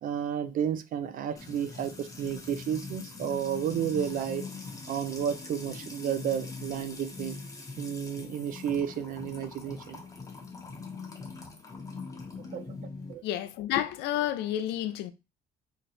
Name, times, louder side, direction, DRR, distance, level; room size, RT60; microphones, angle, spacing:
voice 1, 0.0-4.5 4.9-7.4 7.8-10.0 12.5-12.6 13.1-13.2, right 9 dB, 55° right, 0.4 m, -32 dB
Music / Water tap faucet / Trickle dribble, 1.4-13.1, left 4 dB, 20° left, 0.7 m, -42 dB
voice 2, 13.2-15.1, left 12 dB, 85° left, 0.4 m, -30 dB
2.9 x 2.0 x 4.0 m
cardioid pair, 110°, 17 cm